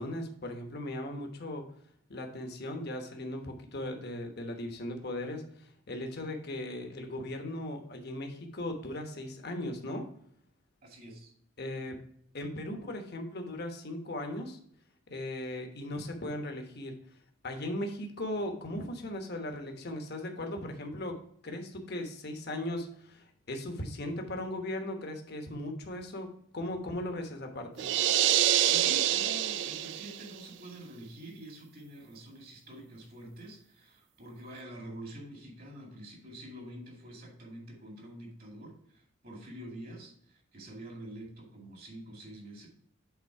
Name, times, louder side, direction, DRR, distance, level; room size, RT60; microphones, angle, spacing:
voice 1, 0.0-1.6 2.1-10.1 11.6-12.0 12.3-14.6 15.1-17.0 17.4-21.2 21.4-27.9, left 1 dB, 55° left, 4 dB, 1.1 m, -38 dB
voice 2, 10.8-11.3 28.7-42.7, right 1 dB, 50° right, 0 dB, 2.3 m, -46 dB
sound 1, 27.8-30.3, right 12 dB, 65° right, 0.3 m, -26 dB
8.2 x 3.9 x 4.6 m, 0.66 s
head